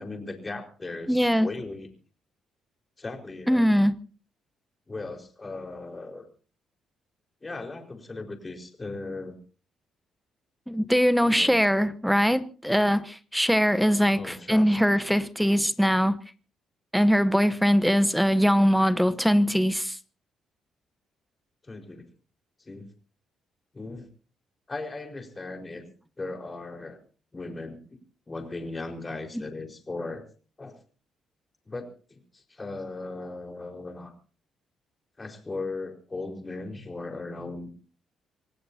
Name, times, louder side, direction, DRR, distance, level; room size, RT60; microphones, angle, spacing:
voice 1, 0.0-1.9 3.0-3.7 4.9-6.3 7.4-9.4 11.2-11.6 14.1-14.8 21.6-22.0 22.6-22.9 23.7-24.1 24.7-25.8 26.2-27.0 27.3-28.0 28.3-30.2 30.6-30.8 31.7-34.1 35.2-37.7, left 3 dB, 25° left, 4 dB, 4.6 m, -37 dB
voice 2, 1.1-1.5 3.5-3.9 10.7-16.2 16.9-20.0, equal, ahead, 12 dB, 0.9 m, -22 dB
26.5 x 17.0 x 2.8 m, 0.38 s
cardioid pair, 90°, 0 cm